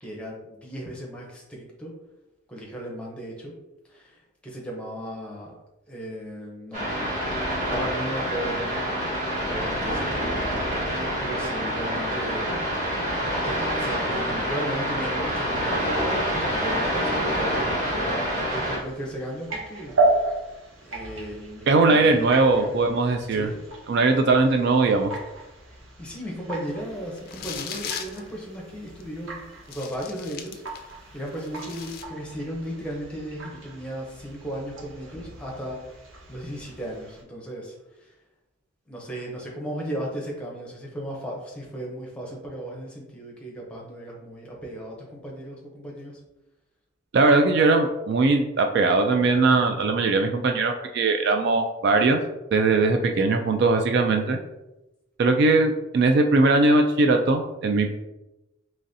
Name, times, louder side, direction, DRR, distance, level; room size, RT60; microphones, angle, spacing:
voice 1, 0.0-1.9 2.5-3.5 3.9-5.5 5.9-7.0 7.5-9.0 9.4-12.4 13.4-20.3 20.8-22.7 23.3-23.6 26.0-29.4 29.7-30.6 31.1-36.0 36.3-38.1 38.9-46.2, equal, 5° left, -3 dB, 0.8 m, -36 dB
sound 1, 6.7-18.8, equal, 40° right, 1.4 m, -27 dB
sound 2, 18.5-37.2, right 2 dB, 80° right, 0.8 m, -34 dB
voice 2, 21.7-23.5 23.9-25.1 47.1-52.2 52.5-54.4 55.2-57.9, right 3 dB, 55° right, 5 dB, 0.3 m, -20 dB
sound 3, 27.2-28.2 29.0-29.1 29.7-30.9 31.3-32.0, left 7 dB, 50° left, 0.4 m, -37 dB
3.9 x 3.1 x 2.7 m, 0.98 s
head